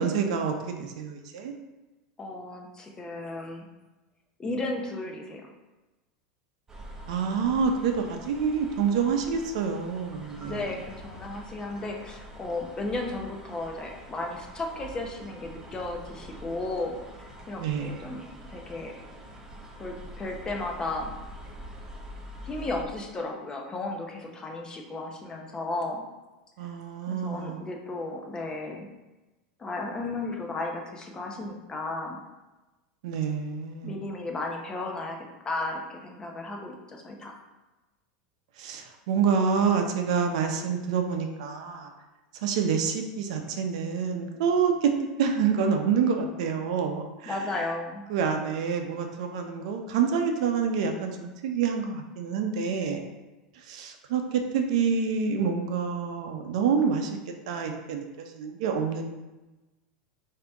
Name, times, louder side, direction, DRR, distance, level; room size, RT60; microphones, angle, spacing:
voice 1, 0.0-1.5 7.1-10.6 17.6-18.0 26.6-27.7 33.0-34.0 38.6-41.9 42.3-44.9 45.2-47.4 48.1-53.0 53.6-57.2 57.5-59.1, right 6 dB, 75° right, 4 dB, 0.6 m, -27 dB
voice 2, 2.2-3.6 4.4-5.4 10.4-16.9 17.2-18.2 18.5-18.9 19.8-21.1 22.4-26.0 27.1-28.9 29.6-32.2 33.8-35.2 35.4-37.4 47.3-48.0, left 2 dB, 20° left, 1 dB, 0.8 m, -34 dB
sound 1, 6.7-22.8, equal, 15° right, 0.7 m, -45 dB
5.0 x 2.8 x 3.5 m, 1.1 s
supercardioid pair, 125°, 4 cm